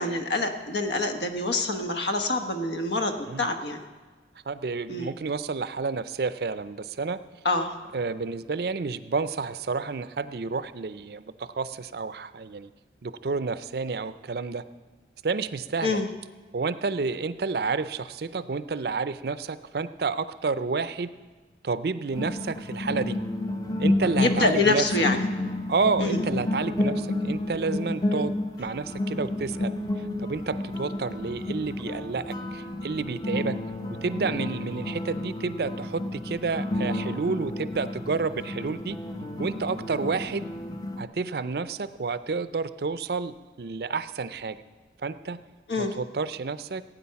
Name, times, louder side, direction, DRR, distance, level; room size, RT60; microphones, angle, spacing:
voice 1, 0.0-3.8 4.9-5.1 7.4-7.7 15.8-16.1 24.2-25.2 26.0-26.2 45.7-45.9, left 2 dB, 75° left, 6 dB, 1.1 m, -26 dB
voice 2, 4.5-7.2 7.9-12.7 13.0-14.6 15.2-16.0 16.5-21.1 21.6-23.2 23.8-24.8 25.7-33.6 34.0-39.0 39.4-40.5 41.0-44.6 45.0-45.4 45.8-46.8, right 4 dB, 60° right, 14 dB, 0.5 m, -30 dB
sound 1, 22.1-41.0, left 1 dB, 20° left, 0.7 m, -31 dB
17.0 x 9.0 x 5.8 m, 1.3 s
head